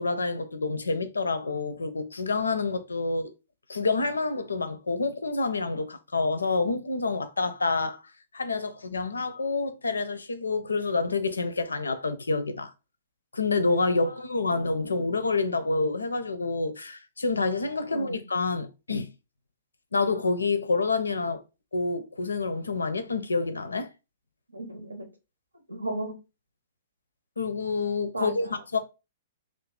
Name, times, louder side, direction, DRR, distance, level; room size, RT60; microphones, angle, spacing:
voice 1, 0.0-3.3 3.7-8.0 8.3-12.7 13.3-19.1 19.9-21.4 21.7-23.9 27.4-28.8, left 3 dB, 75° left, 0.5 m, -28 dB
voice 2, 14.5-15.0 17.9-18.2 24.5-25.1 25.7-26.2 28.1-28.6, right 1 dB, 85° right, 0.8 m, -36 dB
2.7 x 2.6 x 3.5 m
figure-of-eight pair, 110°, 0 cm